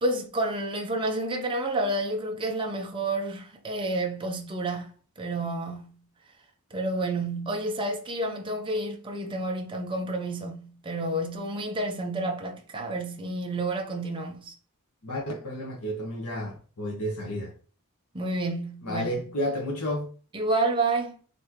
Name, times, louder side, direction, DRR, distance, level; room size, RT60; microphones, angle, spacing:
voice 1, 0.0-6.0 6.7-14.5 18.1-19.3 20.3-21.1, right 2 dB, 25° right, 0.6 m, -30 dB
voice 2, 15.0-17.5 18.8-20.1, equal, 90° left, 1.3 m, -31 dB
4.1 x 3.2 x 2.9 m
head